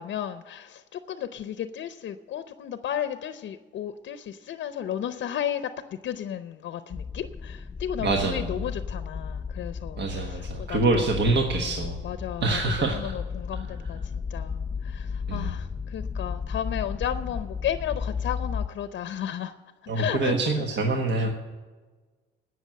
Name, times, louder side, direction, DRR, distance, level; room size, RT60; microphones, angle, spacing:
voice 1, 0.0-11.3 11.6-19.5 19.9-20.3 21.2-21.3, left 10 dB, 70° left, 10 dB, 0.7 m, -34 dB
sound 1, 6.9-18.7, left 5 dB, 20° left, 0.7 m, -34 dB
voice 2, 8.0-8.5 10.0-12.0 12.4-13.1 15.3-15.5 19.9-21.3, right 3 dB, 60° right, 2 dB, 1.3 m, -25 dB
17.0 x 6.2 x 7.6 m, 1.3 s
cardioid pair, 90°, 20 cm